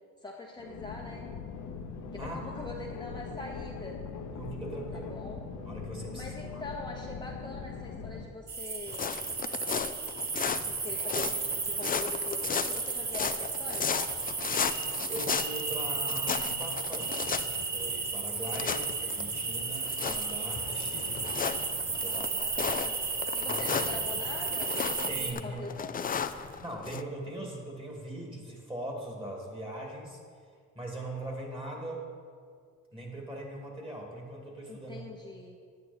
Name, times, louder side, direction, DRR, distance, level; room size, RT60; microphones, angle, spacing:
voice 1, 0.2-1.3 2.1-4.0 4.9-5.4 6.1-9.2 10.6-14.0 22.0-23.0 23.3-24.8 25.1-26.2 34.7-35.6, left 3 dB, 15° left, -2 dB, 1.0 m, -43 dB
sound 1, 0.6-8.3, left 5 dB, 80° left, 1.0 m, -41 dB
voice 2, 2.2-2.5 4.3-5.1 5.6-6.2 6.5-6.6 15.1-21.2 21.9-22.3 23.5-23.7 25.1-25.7 26.6-30.2 30.7-32.0 32.9-35.1, right 1 dB, 15° right, 0 dB, 2.5 m, -40 dB
sound 2, 8.5-25.3, right 4 dB, 35° right, 0.9 m, -33 dB
sound 3, 8.9-27.0, left 7 dB, 30° left, 0.4 m, -35 dB
9.6 x 9.5 x 4.3 m, 2.1 s
cardioid pair, 90°, 30 cm